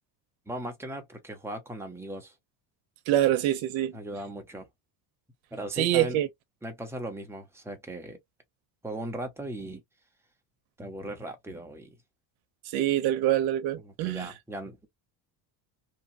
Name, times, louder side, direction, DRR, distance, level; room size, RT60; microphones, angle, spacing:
voice 1, 0.5-2.3 3.9-4.7 5.5-6.2 6.6-8.2 8.8-9.8 10.8-11.9 13.8-14.9, right 1 dB, 5° right, 0.7 m, -38 dB
voice 2, 3.1-4.0 5.8-6.3 12.7-14.3, right 13 dB, 80° right, 0.7 m, -25 dB
2.9 x 2.2 x 2.6 m
cardioid pair, 155°, 46 cm